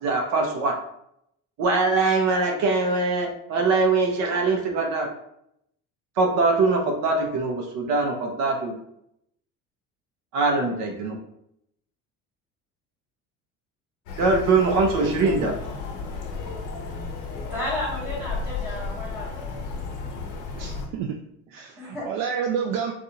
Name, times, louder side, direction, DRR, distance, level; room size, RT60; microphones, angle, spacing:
voice 1, 0.0-0.8 1.6-5.1 6.2-8.7 10.3-11.2 14.2-15.5, right 3 dB, 60° right, 2 dB, 0.8 m, -22 dB
sound 1, 14.1-20.9, left 4 dB, 75° left, 1.0 m, -33 dB
voice 2, 17.5-19.4 21.8-22.1, left 1 dB, 5° right, -12 dB, 1.0 m, -32 dB
voice 3, 20.5-21.2 21.5-22.9, right 7 dB, 90° right, 2 dB, 0.5 m, -29 dB
4.1 x 2.4 x 2.8 m, 0.75 s
cardioid pair, 180°, 30 cm